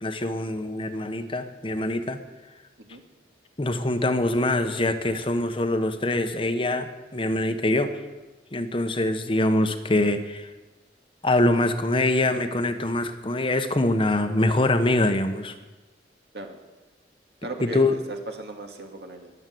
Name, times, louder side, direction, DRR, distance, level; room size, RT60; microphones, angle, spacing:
voice 1, 0.0-2.2 3.6-7.9 8.5-10.5 11.2-15.5 17.6-17.9, left 1 dB, 30° left, 8 dB, 1.0 m, -24 dB
voice 2, 17.4-19.3, right 2 dB, 65° right, 4 dB, 2.2 m, -37 dB
22.0 x 8.1 x 7.8 m, 1.2 s
head